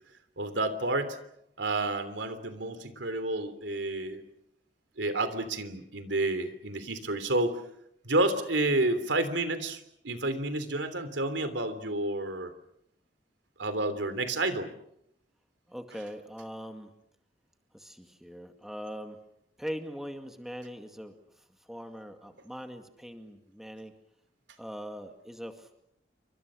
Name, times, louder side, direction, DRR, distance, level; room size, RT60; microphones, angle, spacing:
voice 1, 0.4-1.2 1.6-4.2 5.0-7.6 8.0-12.5 13.6-14.7, right 2 dB, 85° right, 11 dB, 3.3 m, -30 dB
voice 2, 15.7-16.9 17.7-19.2 19.6-23.9 24.6-25.8, equal, ahead, 5 dB, 2.1 m, -41 dB
28.5 x 25.0 x 6.4 m, 0.77 s
head